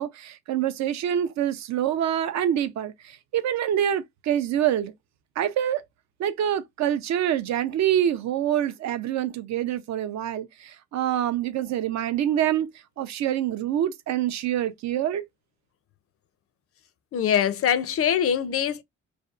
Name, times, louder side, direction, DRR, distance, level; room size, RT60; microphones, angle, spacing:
voice 1, 0.0-4.9 5.4-5.8 6.2-12.7 13.0-15.2, right 10 dB, 65° right, 0.5 m, -26 dB
voice 2, 17.1-18.8, left 9 dB, 50° left, 0.4 m, -23 dB
2.6 x 2.2 x 2.3 m
cardioid pair, 90°, 30 cm